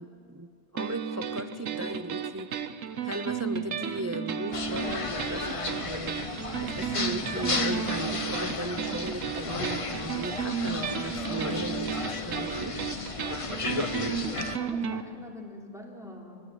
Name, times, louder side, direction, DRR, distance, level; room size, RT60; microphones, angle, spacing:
voice 1, 0.0-2.7 3.0-6.2 6.6-12.8, right 1 dB, 25° right, 10 dB, 0.3 m, -37 dB
sound 1, 0.8-15.0, right 7 dB, 85° right, 1.3 m, -34 dB
sound 2, 4.5-14.6, left 3 dB, 30° left, 0.9 m, -33 dB
voice 2, 14.0-16.4, equal, ahead, -2 dB, 3.5 m, -44 dB
24.5 x 17.5 x 8.4 m, 2.3 s
omnidirectional pair, 1.3 m